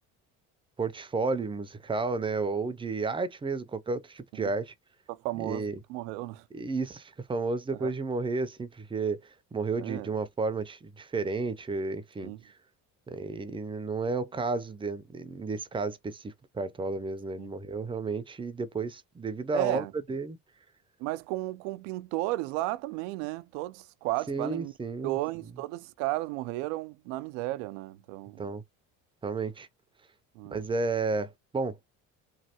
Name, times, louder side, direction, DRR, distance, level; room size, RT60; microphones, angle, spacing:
voice 1, 0.8-4.7 5.4-5.8 6.5-12.5 13.1-20.4 24.3-25.2 28.4-28.6 29.2-29.7 30.5-31.8, right 4 dB, 15° right, 0.5 m, -32 dB
voice 2, 5.1-6.4 7.8-7.9 9.8-10.1 12.2-12.4 17.4-17.5 19.5-19.9 21.0-24.7 25.0-28.4 30.4-30.6, right 18 dB, 85° right, 0.5 m, -34 dB
3.2 x 2.2 x 2.8 m
supercardioid pair, 90°, 36 cm